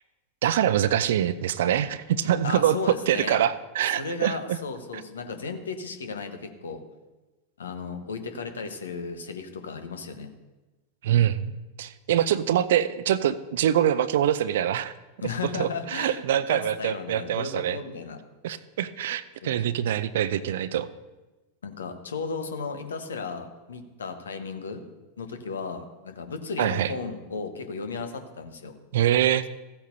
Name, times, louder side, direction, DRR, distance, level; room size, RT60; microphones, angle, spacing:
voice 1, 0.4-4.6 4.9-5.0 11.0-14.9 15.6-17.8 18.4-20.9 26.6-26.9 28.9-29.4, right 10 dB, 55° right, 16 dB, 0.5 m, -24 dB
voice 2, 2.4-3.4 4.0-6.8 7.6-10.3 15.2-18.2 19.4-19.6 21.6-24.8 25.2-28.7, left 4 dB, 70° left, 7 dB, 1.1 m, -35 dB
15.5 x 8.6 x 2.7 m, 1.1 s
figure-of-eight pair, 90°, 0 cm